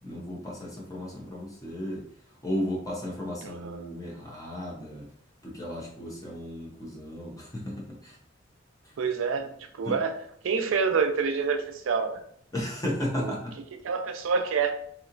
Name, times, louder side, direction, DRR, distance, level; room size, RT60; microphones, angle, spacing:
voice 1, 0.0-2.0 2.4-5.1 5.4-8.2 9.8-10.0 12.5-13.6, equal, 20° left, -3 dB, 0.8 m, -34 dB
voice 2, 3.4-3.9 9.0-9.5 9.8-10.2 10.4-12.2 13.2-13.3 13.8-14.7, right 5 dB, 85° right, 5 dB, 0.4 m, -27 dB
3.1 x 2.8 x 2.5 m, 0.64 s
head